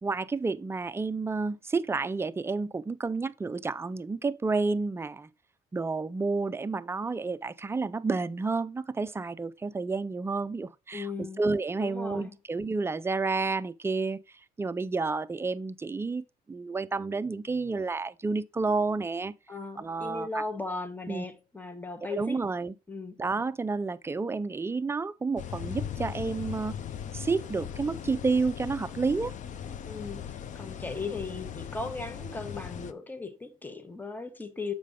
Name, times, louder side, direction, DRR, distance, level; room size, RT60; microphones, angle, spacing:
voice 1, 0.0-5.3 5.7-14.2 14.6-19.3 19.8-20.4 21.1-21.3 22.1-22.7 23.2-26.8 27.1-29.3, right 4 dB, 15° right, 0.4 m, -30 dB
voice 2, 10.9-11.4 11.8-12.3 19.5-22.4 22.9-23.2 29.9-34.7, left 3 dB, 10° left, 1.0 m, -37 dB
sound 1, 25.4-32.9, left 9 dB, 45° left, 0.6 m, -39 dB
7.5 x 5.1 x 3.6 m
cardioid pair, 110°, 17 cm